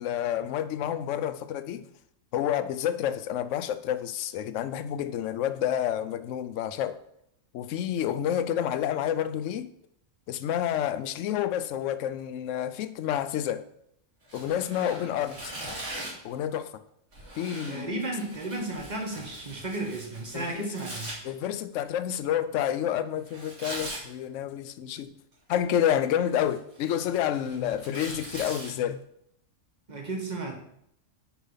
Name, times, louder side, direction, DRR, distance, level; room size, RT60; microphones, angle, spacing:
voice 1, 0.0-1.8 2.3-7.0 7.5-9.7 10.3-13.6 14.3-15.5 16.2-16.8 17.4-17.9 20.3-20.7 21.2-25.1 25.5-29.0, left 10 dB, 75° left, 0.9 m, -29 dB
Tearing, 14.2-16.3 17.1-21.1 23.3-24.0 25.3-25.8 26.2-28.7, right 1 dB, 70° right, 2.7 m, -41 dB
voice 2, 17.7-21.2 29.9-30.6, right 2 dB, 35° right, 1.4 m, -34 dB
7.1 x 4.7 x 5.6 m
omnidirectional pair, 1.3 m